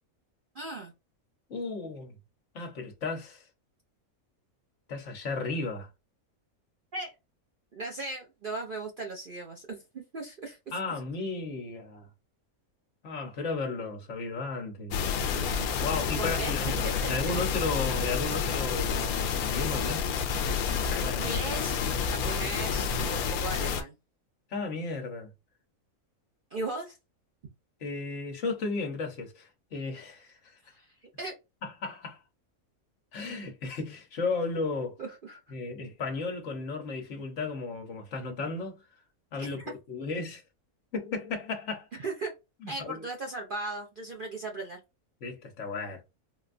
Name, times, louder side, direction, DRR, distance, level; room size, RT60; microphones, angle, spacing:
voice 1, 0.5-0.9 6.9-7.1 7.7-10.6 15.3-15.7 16.2-16.5 16.8-17.1 21.1-23.9 26.5-27.0 30.7-30.9 31.2-31.4 35.0-35.4 39.4-39.7 41.9-42.3 42.7-44.8, right 2 dB, 55° right, 0.6 m, -37 dB
voice 2, 1.5-2.2 2.5-3.5 4.9-5.9 10.7-12.1 13.0-15.0 15.8-16.8 17.1-20.1 20.9-21.3 24.5-25.3 27.8-30.6 31.6-32.2 33.1-35.0 35.5-38.8 39.3-40.4 40.9-41.9 42.6-43.0 45.2-46.0, left 3 dB, 60° left, 1.1 m, -34 dB
sound 1, 14.9-23.8, left 6 dB, 80° left, 1.0 m, -29 dB
3.9 x 2.2 x 2.5 m
omnidirectional pair, 1.5 m